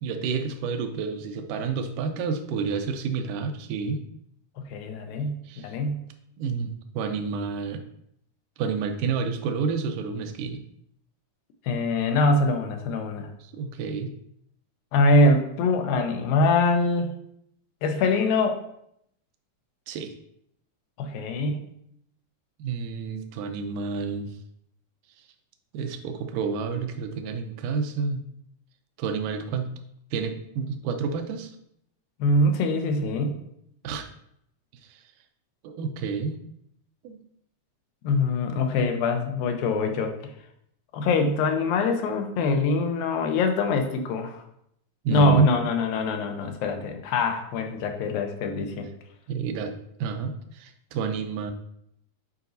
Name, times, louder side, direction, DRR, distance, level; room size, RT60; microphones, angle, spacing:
voice 1, 0.0-4.0 5.5-5.7 6.4-7.8 8.6-10.6 13.4-14.1 19.9-20.1 22.6-24.3 25.7-28.2 29.0-29.7 30.1-31.6 33.8-34.1 34.9-35.0 35.6-36.4 37.0-37.2 45.0-45.5 49.3-49.7 50.0-51.5, right 5 dB, 75° right, 7 dB, 2.1 m, -29 dB
voice 2, 4.7-6.0 11.7-13.3 14.9-17.1 17.8-18.6 21.0-21.6 32.2-33.4 38.0-40.2 40.9-44.4 45.1-48.9, left 2 dB, 85° left, 4 dB, 2.6 m, -23 dB
9.8 x 5.0 x 2.7 m, 0.74 s
omnidirectional pair, 4.0 m